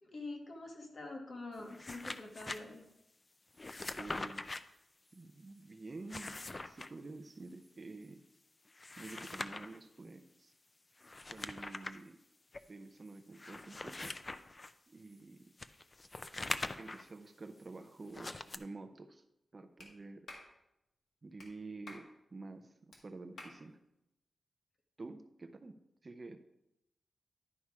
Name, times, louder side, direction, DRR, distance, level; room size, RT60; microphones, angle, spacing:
voice 1, 0.0-2.8, left 2 dB, 50° left, 2 dB, 1.5 m, -46 dB
sound 1, 1.6-2.6 3.6-4.6 5.9-6.9 8.7-9.8 11.0-12.0 12.5-12.6 13.3-14.7 15.6-17.1 18.1-18.6, left 2 dB, 25° left, 0.4 m, -43 dB
voice 2, 4.0-4.5 5.1-8.2 9.0-10.5 11.3-12.2 12.7-14.1 14.9-15.5 16.8-19.2 19.5-20.3 21.2-22.1 22.3-23.8 25.0-26.4, right 3 dB, 30° right, 9 dB, 0.5 m, -49 dB
Clapping, 19.8-19.9 20.3-20.5 21.4-21.5 21.9-22.1 22.9-23.0 23.4-23.6, left 2 dB, 75° left, 1.8 m, -50 dB
11.0 x 5.4 x 4.7 m, 0.85 s
wide cardioid pair, 155°, 0 cm